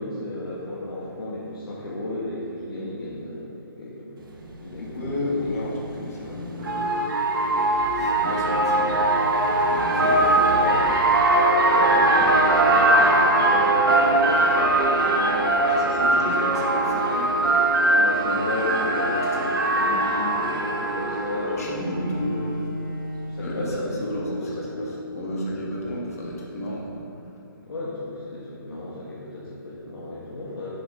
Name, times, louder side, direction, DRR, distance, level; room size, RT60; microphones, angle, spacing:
voice 1, 0.0-4.2 4.6-5.8 8.2-9.1 9.9-10.8 11.6-16.6 17.3-17.5 18.0-21.8 23.2-24.9 25.2-25.4 27.6-30.7, left 2 dB, 85° left, -8 dB, 1.8 m, -33 dB
sound 1, 4.5-4.6 6.0-21.6, right 2 dB, 65° right, 1.3 m, -21 dB
voice 2, 4.8-7.0 7.5-9.0 9.7-10.4 15.7-17.3 21.4-22.6 23.4-23.6 24.0-24.3 24.7-27.1, left 1 dB, 40° left, -4 dB, 1.6 m, -32 dB
sound 2, 6.6-22.6, equal, 35° right, 1.8 m, -36 dB
Bowed string instrument, 21.6-24.6, equal, 5° right, 0.7 m, -34 dB
7.6 x 7.3 x 3.8 m, 2.7 s
hypercardioid pair, 175°, 12 cm